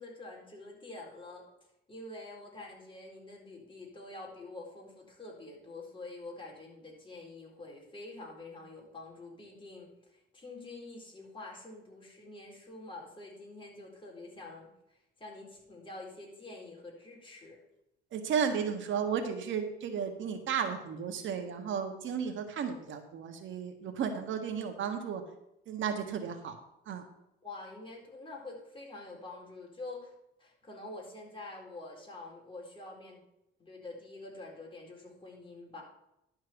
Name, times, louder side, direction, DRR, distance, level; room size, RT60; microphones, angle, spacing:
voice 1, 0.0-1.4 1.9-17.6 27.4-30.1 30.4-33.2 33.6-35.8, left 2 dB, 25° left, -2 dB, 4.1 m, -47 dB
voice 2, 18.1-25.2 25.7-26.6 26.8-27.0, right 7 dB, 75° right, 6 dB, 1.5 m, -34 dB
11.5 x 4.5 x 7.9 m, 0.83 s
cardioid pair, 90°, 20 cm